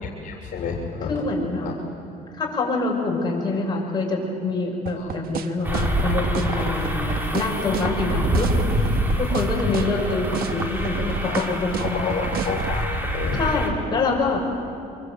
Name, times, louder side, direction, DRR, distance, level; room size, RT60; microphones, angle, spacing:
voice 1, 0.2-1.1 1.6-1.7 5.0-5.1 11.2-11.5 11.8-13.4, left 6 dB, 50° left, -2 dB, 3.5 m, -30 dB
voice 2, 1.1-1.7 2.3-8.5 8.8-8.9 9.2-12.2 13.3-14.5, left 3 dB, 25° left, -2 dB, 6.3 m, -25 dB
sound 1, 4.9-12.8, right 8 dB, 60° right, 1.3 m, -30 dB
sound 2, 5.6-13.7, equal, 10° right, 3.5 m, -26 dB
25.0 x 23.5 x 8.0 m, 2.6 s
cardioid pair, 110°, 17 cm